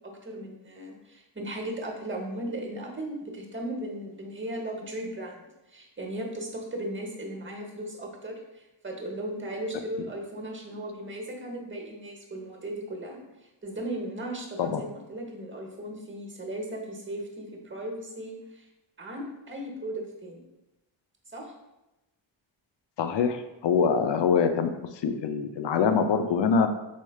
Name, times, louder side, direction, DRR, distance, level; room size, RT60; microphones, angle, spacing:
voice 1, 0.2-5.4 5.7-13.2 13.6-18.7 19.0-20.4 21.3-21.5, right 1 dB, 25° right, 1 dB, 0.9 m, -36 dB
voice 2, 23.0-24.7 25.0-26.7, left 6 dB, 65° left, 8 dB, 0.5 m, -24 dB
4.3 x 3.1 x 2.3 m, 0.98 s
cardioid pair, 45°, 47 cm